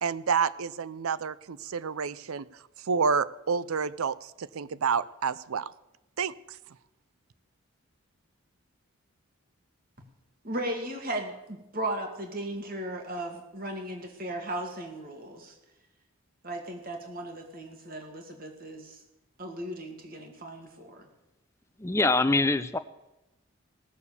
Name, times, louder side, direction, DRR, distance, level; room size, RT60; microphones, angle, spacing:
voice 1, 0.0-2.5 2.9-5.7 6.2-6.3, right 6 dB, 80° right, 18 dB, 0.5 m, -29 dB
voice 2, 10.4-15.6 16.4-19.0 19.4-21.1, right 1 dB, 40° right, 3 dB, 2.2 m, -36 dB
voice 3, 21.8-22.8, left 2 dB, 15° left, 11 dB, 0.5 m, -24 dB
18.0 x 7.0 x 7.0 m, 0.94 s
head